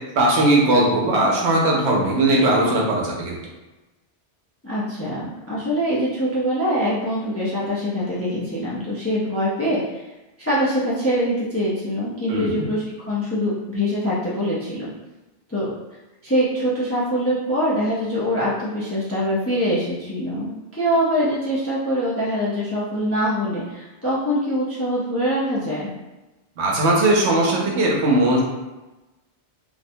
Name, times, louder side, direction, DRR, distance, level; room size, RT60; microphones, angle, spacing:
voice 1, 0.1-3.4 12.3-12.6 26.6-28.4, right 1 dB, 90° right, -2 dB, 1.0 m, -19 dB
voice 2, 4.6-10.0 10.4-14.9 15.5-15.7 16.2-25.9, equal, 25° left, -8 dB, 0.3 m, -24 dB
2.5 x 2.1 x 2.7 m, 1.1 s
omnidirectional pair, 1.1 m